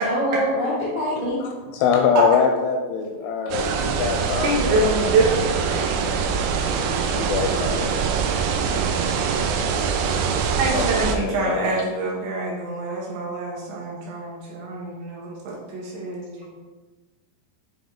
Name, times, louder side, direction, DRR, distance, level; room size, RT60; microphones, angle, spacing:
voice 1, 0.0-1.4, equal, 50° right, -10 dB, 1.7 m, -24 dB
voice 2, 1.4-5.1 5.9-6.0 7.1-8.0 10.7-11.7, left 6 dB, 85° left, 2 dB, 2.8 m, -24 dB
sound 1, 3.5-11.2, right 6 dB, 90° right, 3.4 m, -23 dB
voice 3, 4.4-5.3 10.4-16.5, right 2 dB, 75° right, -4 dB, 2.9 m, -25 dB
9.4 x 3.6 x 3.8 m, 1.3 s
omnidirectional pair, 5.9 m